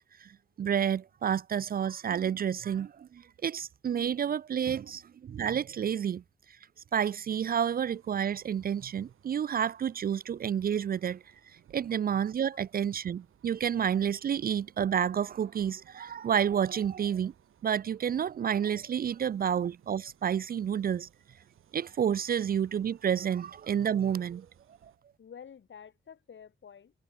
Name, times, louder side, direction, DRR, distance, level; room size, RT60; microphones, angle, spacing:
voice 1, 0.6-6.2 6.9-11.2 11.7-17.3 17.6-21.1 21.7-24.5, right 8 dB, 45° right, 0.4 m, -30 dB
sound 1, 7.8-25.0, right 10 dB, 90° right, 7.1 m, -63 dB
voice 2, 25.2-26.9, left 7 dB, 65° left, 6.1 m, -50 dB
cardioid pair, 75°, 20 cm